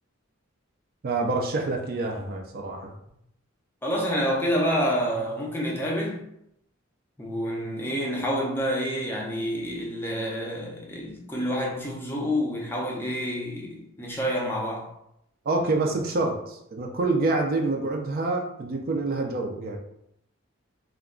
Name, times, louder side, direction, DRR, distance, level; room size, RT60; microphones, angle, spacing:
voice 1, 1.0-2.9 15.5-19.8, right 3 dB, 45° right, 2 dB, 0.4 m, -27 dB
voice 2, 3.8-6.2 7.2-14.9, equal, 10° left, -2 dB, 0.5 m, -28 dB
2.3 x 2.2 x 3.6 m, 0.77 s
head